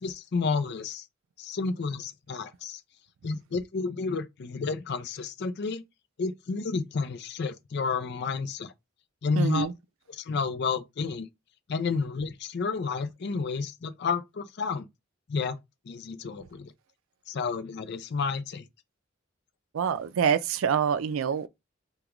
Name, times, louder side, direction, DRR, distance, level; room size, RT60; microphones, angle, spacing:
voice 1, 0.0-1.1 1.4-2.8 3.2-5.8 6.2-8.7 9.2-9.7 10.1-11.3 11.7-14.9 15.3-15.6 15.9-16.7 17.3-18.6, left 4 dB, 55° left, 0.4 m, -31 dB
voice 2, 9.4-9.7 19.7-21.5, right 7 dB, 90° right, 0.4 m, -26 dB
3.6 x 2.3 x 2.9 m
head